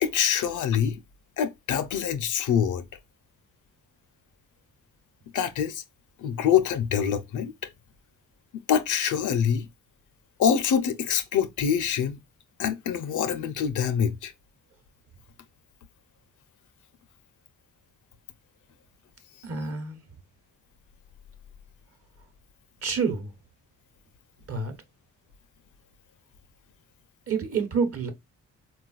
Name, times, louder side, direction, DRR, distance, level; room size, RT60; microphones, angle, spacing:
voice 1, 0.0-1.0 1.4-2.8 5.3-5.8 6.2-7.5 8.5-9.7 10.4-12.2 12.6-14.3, left 8 dB, 60° left, 0.6 m, -25 dB
voice 2, 19.4-20.0 22.8-23.3 24.5-24.7 27.3-28.1, right 5 dB, 40° right, 1.1 m, -28 dB
3.8 x 2.3 x 2.4 m
supercardioid pair, 55°, 35 cm